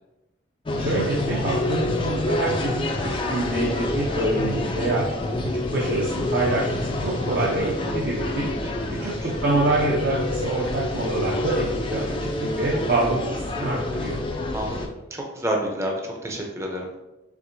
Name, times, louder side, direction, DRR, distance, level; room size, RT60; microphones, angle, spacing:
sound 1, 0.7-14.9, left 1 dB, 25° left, 0.4 m, -27 dB
voice 1, 0.8-5.1 5.5-8.5 9.0-14.2, right 2 dB, 55° right, -4 dB, 0.7 m, -26 dB
voice 2, 8.6-9.3 14.5-16.9, right 1 dB, 15° right, 0 dB, 0.6 m, -30 dB
4.6 x 3.6 x 2.6 m, 1.0 s
head